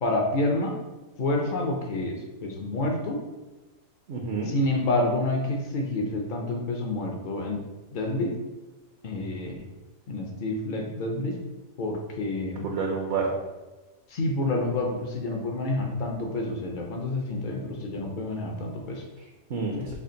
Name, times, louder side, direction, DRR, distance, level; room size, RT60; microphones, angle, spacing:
voice 1, 0.0-0.7 1.2-3.2 4.5-7.6 7.9-8.3 9.0-9.6 10.1-11.4 11.8-12.7 14.1-19.0 19.8-19.9, left 2 dB, 60° left, 1 dB, 0.5 m, -28 dB
voice 2, 4.1-4.5 12.6-13.4 19.2-20.0, right 4 dB, 65° right, 0 dB, 0.7 m, -29 dB
3.4 x 2.4 x 3.8 m, 1.1 s
omnidirectional pair, 1.4 m